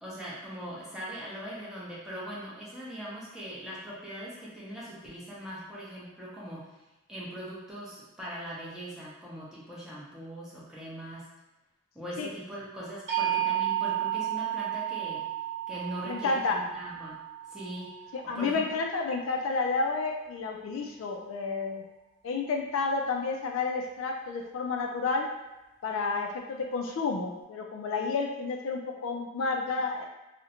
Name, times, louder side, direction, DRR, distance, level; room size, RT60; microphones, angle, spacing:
voice 1, 0.0-6.7 7.1-11.3 11.9-15.2 15.7-17.2 17.5-17.9 18.3-18.6, right 1 dB, 5° right, -8 dB, 0.6 m, -41 dB
sound 1, 13.1-19.1, right 12 dB, 60° right, 0.9 m, -33 dB
voice 2, 16.1-16.6 18.1-21.8 22.2-25.3 25.8-30.1, left 4 dB, 65° left, 2 dB, 0.3 m, -30 dB
2.5 x 2.1 x 2.8 m, 1.0 s
head